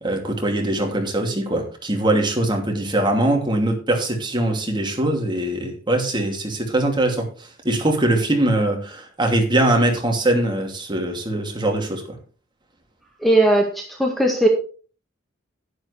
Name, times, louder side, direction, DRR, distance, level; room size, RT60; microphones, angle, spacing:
voice 1, 0.0-12.2, right 1 dB, 25° right, 2.8 m, -22 dB
voice 2, 13.2-14.5, right 1 dB, ahead, 1.8 m, -18 dB
11.0 x 11.0 x 3.4 m
head